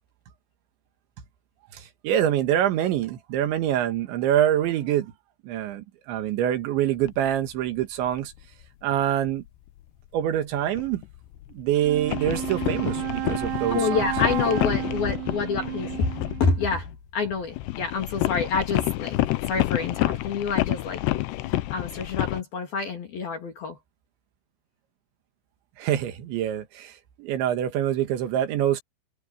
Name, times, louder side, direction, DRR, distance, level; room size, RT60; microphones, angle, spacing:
voice 1, 1.7-5.1 5.4-8.3 8.8-9.4 10.1-11.0 11.5-14.1 25.8-28.8, right 11 dB, 70° right, 3.9 m, -25 dB
sound 1, 7.0-7.3 7.8-8.6 9.0-9.5 10.6-16.9 17.2-22.4, left 17 dB, 80° left, 2.5 m, -29 dB
Wind instrument woodwind instrument, 11.8-16.7, right 19 dB, 90° right, 3.3 m, -32 dB
voice 2, 13.7-16.9 17.1-19.2 19.5-21.0 21.5-23.8, left 5 dB, 55° left, 4.1 m, -27 dB
omnidirectional pair, 5.8 m